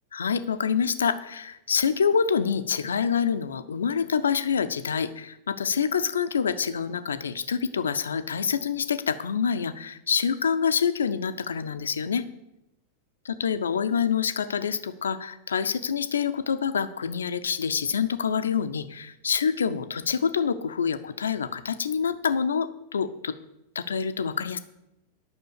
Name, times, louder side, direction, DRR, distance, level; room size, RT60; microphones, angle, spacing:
voice 1, 0.1-12.2 13.2-23.3 23.7-24.6, left 6 dB, 70° left, 12 dB, 0.6 m, -26 dB
10.0 x 6.1 x 6.6 m, 0.88 s
figure-of-eight pair, 90°, 0 cm